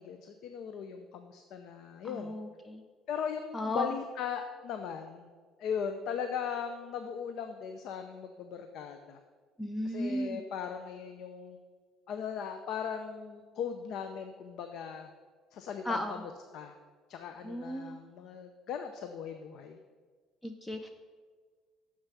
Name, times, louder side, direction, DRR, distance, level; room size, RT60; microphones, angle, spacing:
voice 1, 0.0-2.4 3.1-5.3 5.6-9.2 9.8-11.6 12.1-15.1 15.5-16.8 17.1-19.8, left 7 dB, 65° left, 7 dB, 0.5 m, -38 dB
voice 2, 2.0-2.8 3.5-3.9 9.6-10.4 15.9-16.2 17.4-17.9 20.4-20.9, left 1 dB, 10° left, 6 dB, 0.5 m, -35 dB
6.7 x 6.5 x 6.1 m, 1.6 s
cardioid pair, 100°, 0 cm